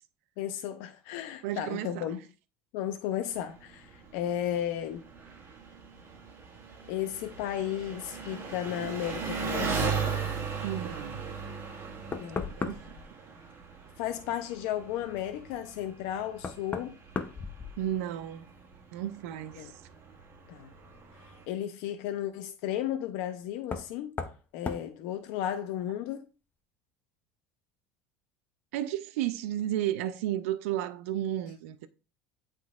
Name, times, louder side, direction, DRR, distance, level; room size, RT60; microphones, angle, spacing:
voice 1, 0.4-2.2 2.7-5.1 6.9-10.0 12.2-12.5 14.0-17.0 19.6-19.7 20.5-20.7 21.5-24.2 24.5-26.3, left 11 dB, 75° left, 0.6 m, -34 dB
voice 2, 1.4-2.1 10.6-11.2 12.6-13.0 17.8-18.5 18.9-19.7 28.7-31.9, right 12 dB, 90° right, 0.6 m, -33 dB
Engine, 3.3-21.5, right 5 dB, 30° right, 1.7 m, -38 dB
Knock, 12.1-13.1 15.5-15.6 16.4-18.2 18.5-19.1 20.8-20.9 23.6-23.9 24.2-24.4 24.7-24.9, left 5 dB, 25° left, 0.7 m, -36 dB
10.5 x 3.8 x 2.4 m
supercardioid pair, 120°, 7 cm